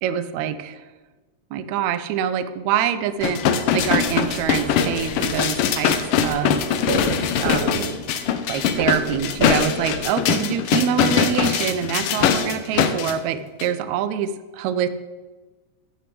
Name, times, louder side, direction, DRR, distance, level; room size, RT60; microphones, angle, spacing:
voice 1, 0.0-0.8 1.5-6.6 7.4-8.0 8.5-14.9, right 9 dB, 80° right, 13 dB, 1.9 m, -25 dB
sound 1, 3.2-13.1 13.6-13.7, left 8 dB, 80° left, 1.2 m, -22 dB
sound 2, 3.8-10.0, right 2 dB, 50° right, 3.4 m, -31 dB
8.7 x 6.5 x 7.7 m, 1.3 s
omnidirectional pair, 3.3 m